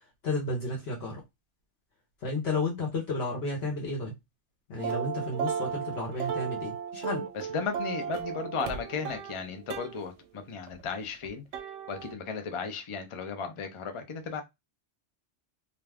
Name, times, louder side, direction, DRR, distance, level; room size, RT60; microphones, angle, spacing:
voice 1, 0.2-1.2 2.2-4.1 4.7-7.2, left 2 dB, 65° left, 1.0 m, -32 dB
sound 1, 4.8-10.0 10.7-12.1, right 7 dB, 85° right, 0.9 m, -35 dB
voice 2, 7.3-11.4 11.9-14.4, left 5 dB, 45° left, 0.4 m, -35 dB
2.5 x 2.3 x 3.3 m
omnidirectional pair, 1.2 m